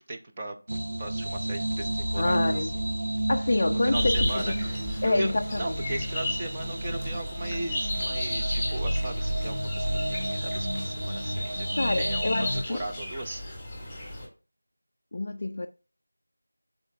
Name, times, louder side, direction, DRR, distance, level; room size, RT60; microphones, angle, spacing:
voice 1, 0.1-2.8 3.8-11.7 12.0-13.4, right 2 dB, 15° right, 0.5 m, -38 dB
sound 1, 0.7-12.6, right 1 dB, 55° right, 1.2 m, -31 dB
voice 2, 2.2-2.7 3.3-4.6 5.0-5.8 11.8-12.8 13.9-14.0 15.1-15.7, left 2 dB, 35° left, 0.3 m, -27 dB
sound 2, 3.9-14.3, left 1 dB, ahead, 1.4 m, -34 dB
11.0 x 4.0 x 2.6 m
figure-of-eight pair, 175°, 0 cm